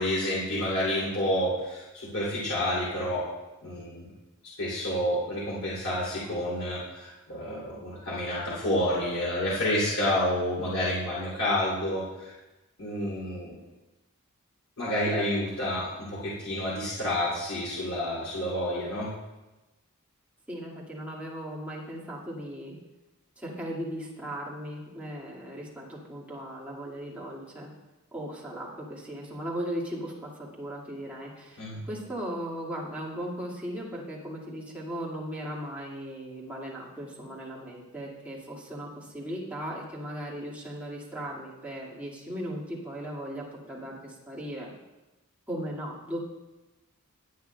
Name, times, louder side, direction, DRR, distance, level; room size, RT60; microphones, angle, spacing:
voice 1, 0.0-3.3 3.6-4.1 4.6-12.4 12.8-13.5 14.8-19.1 31.6-31.8, left 1 dB, 75° left, -8 dB, 2.9 m, -29 dB
voice 2, 20.5-22.8 23.4-27.7 28.1-30.3 30.6-31.6 31.9-44.7 45.5-46.2, equal, 5° right, -6 dB, 2.0 m, -37 dB
17.5 x 8.4 x 2.3 m, 1.1 s
head